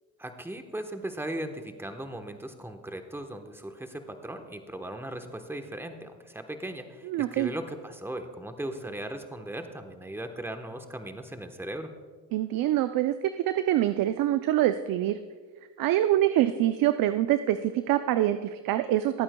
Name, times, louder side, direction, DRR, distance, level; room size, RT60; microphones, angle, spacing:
voice 1, 0.2-11.9, right 1 dB, 5° right, 6 dB, 1.1 m, -38 dB
voice 2, 7.1-7.5 12.3-15.2 15.8-19.2, right 13 dB, 65° right, 11 dB, 0.5 m, -25 dB
21.0 x 8.7 x 2.3 m, 1.5 s
supercardioid pair, 70°, 38 cm